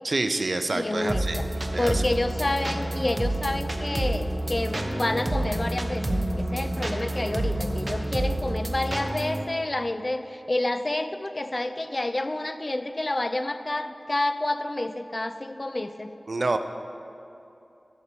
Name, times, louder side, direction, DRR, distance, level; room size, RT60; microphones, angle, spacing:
voice 1, 0.0-1.4 1.7-2.0 16.3-16.6, right 2 dB, 65° right, 8 dB, 0.5 m, -27 dB
voice 2, 0.7-1.5 1.8-16.1, left 2 dB, 40° left, 10 dB, 0.4 m, -29 dB
sound 1, 1.1-8.7, equal, 15° left, 1.1 m, -39 dB
sound 2, 1.1-9.4, right 1 dB, 40° right, 0.8 m, -29 dB
11.0 x 4.2 x 6.9 m, 2.8 s
wide cardioid pair, 60°, 0 cm